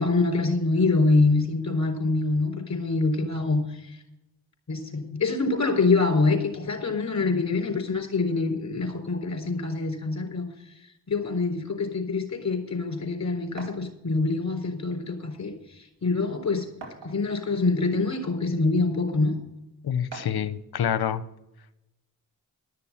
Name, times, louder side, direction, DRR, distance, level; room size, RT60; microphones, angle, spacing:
voice 1, 0.0-4.0 4.7-10.5 11.1-16.7 17.0-19.4, left 3 dB, 35° left, 3 dB, 3.9 m, -25 dB
sound 1, 13.6-13.9 15.0-15.1 15.5-15.6 16.8-17.4 18.3-18.4 20.1-20.5, right 3 dB, 65° right, 2.4 m, -42 dB
voice 2, 19.8-21.2, left 9 dB, 60° left, 14 dB, 0.9 m, -27 dB
12.0 x 6.8 x 7.3 m, 0.88 s
supercardioid pair, 40°, 44 cm